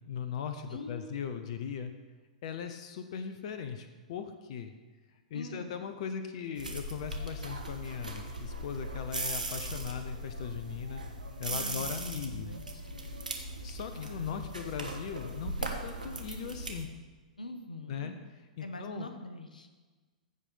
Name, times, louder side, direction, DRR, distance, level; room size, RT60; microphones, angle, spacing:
voice 1, 0.1-1.9 2.4-4.7 5.3-11.0 11.4-12.5 13.6-16.9 17.9-18.1 18.6-19.1, left 7 dB, 55° left, 8 dB, 0.9 m, -39 dB
voice 2, 0.7-1.2 5.3-5.7 11.5-12.7 13.0-13.1 13.9-14.5 17.4-18.2 18.6-19.7, left 2 dB, 85° left, 8 dB, 1.0 m, -43 dB
sound 1, 6.6-16.8, right 1 dB, 90° right, 1.4 m, -39 dB
15.0 x 5.1 x 5.6 m, 1.3 s
figure-of-eight pair, 105°, 4 cm